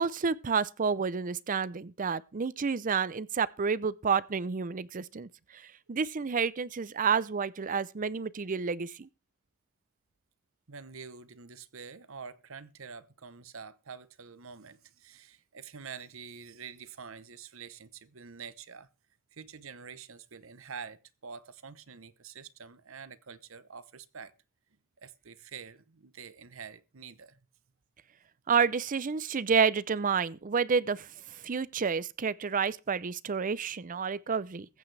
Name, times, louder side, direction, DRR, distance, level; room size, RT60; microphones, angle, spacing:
voice 1, 0.0-9.1 28.5-34.7, right 6 dB, 40° right, 0.5 m, -30 dB
voice 2, 10.7-18.9 19.3-24.3 25.0-27.4, right 6 dB, 65° right, 0.9 m, -47 dB
21.5 x 8.4 x 3.3 m
head